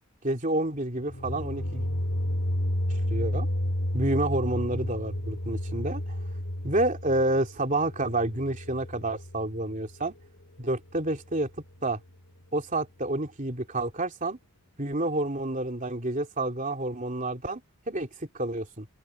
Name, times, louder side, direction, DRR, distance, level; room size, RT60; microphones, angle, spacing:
voice 1, 0.2-1.9 3.1-3.5 3.9-6.0 6.6-10.1 10.6-11.5 11.8-12.0 12.5-14.4 14.8-17.6 17.9-18.1 18.3-18.9, right 2 dB, 35° right, 3.0 m, -29 dB
sound 1, 1.0-9.9, left 1 dB, 75° left, 2.2 m, -31 dB
head